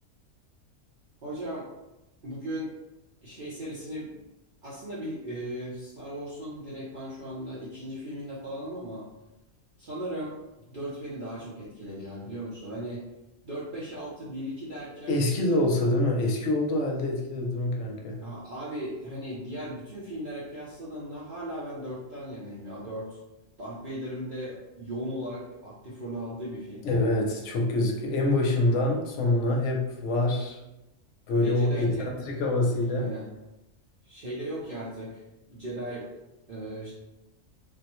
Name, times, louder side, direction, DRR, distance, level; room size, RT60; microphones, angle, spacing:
voice 1, 1.2-1.7 2.2-2.7 3.2-4.2 4.6-9.1 9.8-10.4 10.7-13.0 13.4-15.2 15.8-15.9 18.2-23.2 23.6-26.8 31.3-32.1 32.9-33.3 34.0-36.1 36.5-36.9, equal, 50° right, -8 dB, 0.7 m, -37 dB
voice 2, 15.1-18.3 26.8-30.6 31.3-33.0, left 2 dB, 75° left, 0 dB, 0.9 m, -25 dB
3.4 x 2.0 x 2.9 m, 0.96 s
omnidirectional pair, 1.3 m